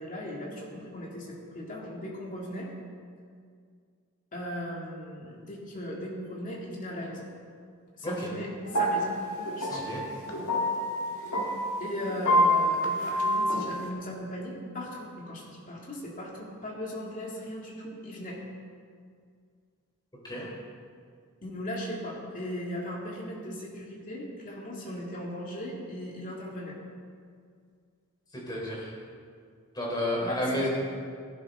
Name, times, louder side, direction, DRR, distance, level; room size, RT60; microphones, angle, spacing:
voice 1, 0.0-2.7 4.3-7.3 7.9-9.1 9.6-9.9 11.2-11.5 11.8-18.4 21.4-26.8 30.2-30.7, left 1 dB, 35° left, -3 dB, 2.6 m, -38 dB
sound 1, 8.7-13.9, equal, 70° left, 1.8 m, -27 dB
voice 2, 9.6-10.0 20.2-20.4 28.3-28.9 29.7-30.7, left 1 dB, 20° left, -4 dB, 3.8 m, -31 dB
16.5 x 11.0 x 3.8 m, 2.1 s
head